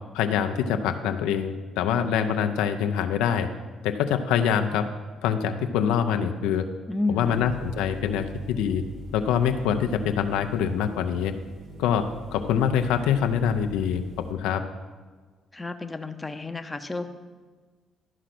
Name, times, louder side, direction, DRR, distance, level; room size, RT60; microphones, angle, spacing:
voice 1, 0.1-3.5 3.8-4.9 5.2-6.7 7.1-8.8 9.1-11.3 11.8-14.6, left 8 dB, 90° left, 7 dB, 0.6 m, -25 dB
voice 2, 6.9-7.5 15.5-17.1, left 3 dB, 15° left, 7 dB, 0.7 m, -31 dB
sound 1, 7.2-14.3, left 1 dB, 70° right, 1.7 m, -44 dB
12.0 x 5.0 x 5.9 m, 1.4 s
supercardioid pair, 75°, 0 cm